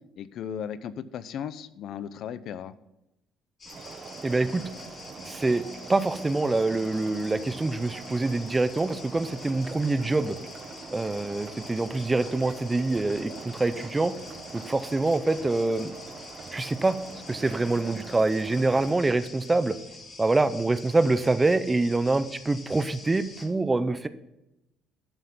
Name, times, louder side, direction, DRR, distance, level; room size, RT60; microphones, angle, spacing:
voice 1, 0.2-2.7, left 8 dB, 55° left, 15 dB, 0.6 m, -36 dB
sound 1, 3.6-23.4, left 3 dB, 35° left, 2.8 m, -46 dB
sound 2, 3.7-18.9, right 4 dB, 35° right, 1.1 m, -43 dB
voice 2, 4.2-4.6 5.2-5.6 5.9-10.4 10.9-14.1 14.5-15.9 16.5-17.0 17.3-19.8 20.2-24.1, right 2 dB, 15° right, 13 dB, 0.5 m, -25 dB
12.0 x 6.2 x 5.4 m, 0.91 s
cardioid pair, 150°, 0 cm